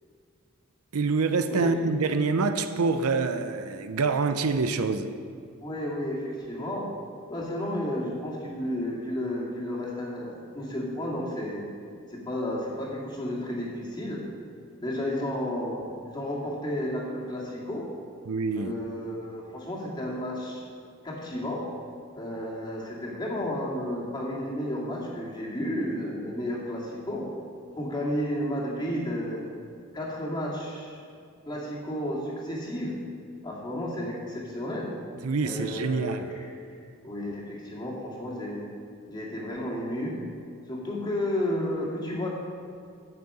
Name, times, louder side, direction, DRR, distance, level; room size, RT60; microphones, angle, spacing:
voice 1, 0.9-5.1 18.3-18.7 35.2-36.3, right 4 dB, 90° right, 9 dB, 0.6 m, -26 dB
voice 2, 1.5-1.8 5.6-6.9 7.3-11.7 12.1-14.2 14.8-17.9 18.5-20.6 21.0-21.6 22.2-27.3 27.8-29.4 29.9-31.0 31.5-32.9 33.4-34.9 35.4-36.8 37.0-38.6 39.1-40.2 40.7-42.3, left 1 dB, 20° left, -4 dB, 2.2 m, -32 dB
8.5 x 6.7 x 8.5 m, 2.4 s
head